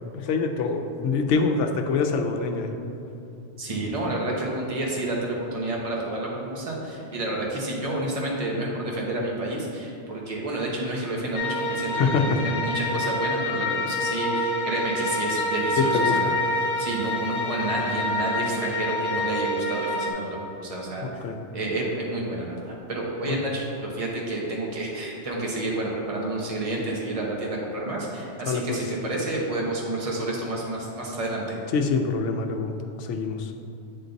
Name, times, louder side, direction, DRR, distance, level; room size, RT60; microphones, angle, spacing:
voice 1, 0.1-2.7 12.0-12.4 15.8-16.2 21.2-21.4 23.3-23.4 28.5-28.8 31.7-33.5, left 4 dB, 80° left, 6 dB, 0.9 m, -25 dB
voice 2, 3.6-21.2 21.5-31.6, right 2 dB, 30° right, -2 dB, 1.0 m, -30 dB
sound 1, 11.3-20.1, left 1 dB, 50° left, 0.8 m, -27 dB
8.2 x 3.9 x 3.9 m, 2.7 s
omnidirectional pair, 1.2 m